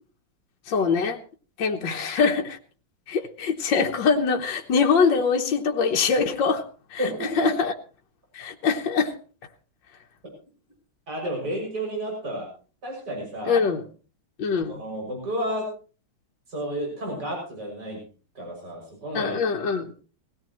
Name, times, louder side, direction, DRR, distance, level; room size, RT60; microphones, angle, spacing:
voice 1, 0.7-1.2 1.6-2.6 3.1-6.7 6.9-7.7 8.3-9.2 13.5-13.8 14.4-14.8 19.1-19.9, left 5 dB, 65° left, 1.8 m, -23 dB
voice 2, 7.0-7.5 11.1-12.5 12.8-13.6 14.7-15.7 16.5-18.0 18.4-19.4, right 1 dB, 50° right, 7.3 m, -31 dB
20.5 x 17.0 x 3.1 m
omnidirectional pair, 2.3 m